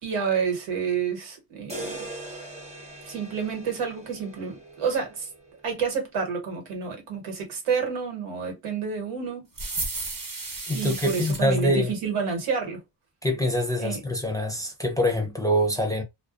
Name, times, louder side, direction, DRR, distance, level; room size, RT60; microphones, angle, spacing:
voice 1, 0.0-1.9 3.0-5.3 5.6-9.5 10.7-12.8 13.8-14.0, right 6 dB, 90° right, 1.3 m, -29 dB
sound 1, 1.7-5.8, right 2 dB, 15° right, 0.9 m, -40 dB
sound 2, 9.6-11.4, right 3 dB, 45° right, 0.9 m, -33 dB
voice 2, 10.7-11.9 13.2-16.0, equal, 5° left, 0.5 m, -25 dB
2.3 x 2.2 x 2.4 m
cardioid pair, 100°, 49 cm